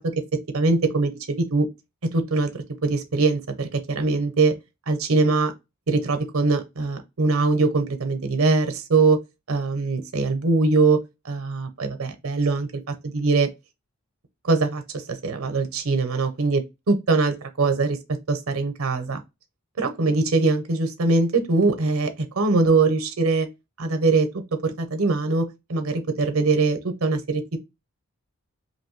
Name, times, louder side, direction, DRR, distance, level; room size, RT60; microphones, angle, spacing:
voice 1, 0.5-1.7 2.0-2.5 2.8-4.5 4.9-5.5 5.9-9.2 9.5-11.0 11.2-12.7 13.1-13.5 14.4-18.0 18.3-19.2 19.8-23.5 23.8-24.3 24.6-27.6, right 3 dB, 80° right, 0.7 m, -22 dB
3.0 x 2.6 x 3.1 m
head